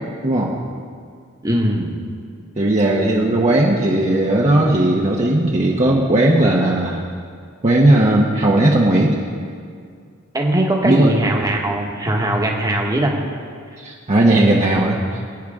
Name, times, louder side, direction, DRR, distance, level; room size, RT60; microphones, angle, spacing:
voice 1, 0.2-0.5 2.6-7.0 7.6-9.2 10.8-11.1 13.8-15.2, right 1 dB, 30° right, -3 dB, 1.0 m, -16 dB
voice 2, 1.4-1.9 10.3-13.1, right 1 dB, 15° right, 0 dB, 1.4 m, -20 dB
23.0 x 9.2 x 3.6 m, 2.2 s
head